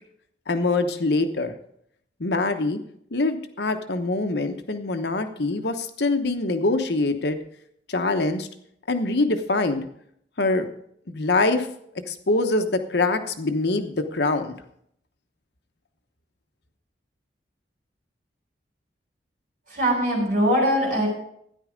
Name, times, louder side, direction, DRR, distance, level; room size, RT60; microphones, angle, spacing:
voice 1, 0.5-1.5 2.2-2.8 3.1-7.4 7.9-8.5 8.9-9.9 10.4-10.7 11.1-11.7 12.1-14.6, left 2 dB, 65° left, 7 dB, 1.0 m, -24 dB
voice 2, 19.7-21.1, equal, 45° right, -1 dB, 6.9 m, -21 dB
13.0 x 10.0 x 5.1 m, 0.72 s
head